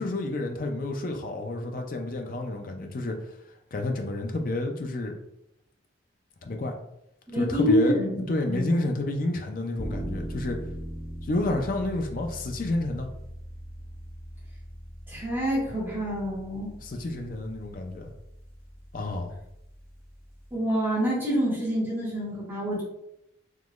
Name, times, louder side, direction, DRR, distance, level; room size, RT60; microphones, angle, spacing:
voice 1, 0.0-3.2 3.7-5.1 6.4-6.7 7.3-8.0 8.3-10.6 11.3-13.1 16.8-18.1 18.9-19.3, left 2 dB, 45° left, 3 dB, 0.4 m, -30 dB
voice 2, 7.3-8.8 15.1-16.7 20.5-22.8, equal, 10° right, -9 dB, 1.5 m, -27 dB
sound 1, 9.8-20.5, equal, 15° left, 1.3 m, -40 dB
3.7 x 3.0 x 2.4 m, 0.82 s
head